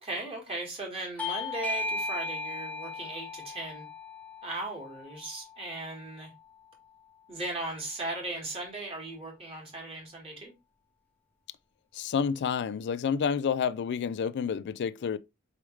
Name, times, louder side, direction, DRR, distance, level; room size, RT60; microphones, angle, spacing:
voice 1, 0.0-3.8 4.4-6.3 7.3-10.5, right 2 dB, 25° right, 1.7 m, -37 dB
Bell / Doorbell, 1.2-6.4, left 2 dB, 5° left, 0.7 m, -37 dB
voice 2, 11.9-15.2, left 6 dB, 50° left, 0.3 m, -29 dB
4.7 x 3.5 x 3.1 m
head